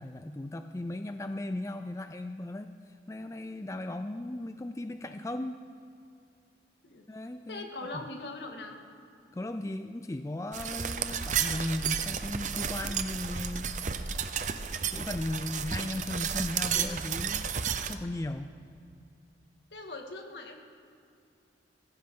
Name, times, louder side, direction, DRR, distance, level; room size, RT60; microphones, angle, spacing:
voice 1, 0.0-5.6 7.1-7.7 7.9-8.0 9.3-14.0 14.9-17.5 17.9-18.6, left 1 dB, 15° left, 8 dB, 0.4 m, -37 dB
voice 2, 7.5-8.8 19.7-20.6, left 2 dB, 70° left, 2 dB, 1.9 m, -41 dB
sound 1, 10.5-17.9, right 7 dB, 40° right, 0.7 m, -32 dB
20.5 x 15.5 x 3.8 m, 2.5 s
head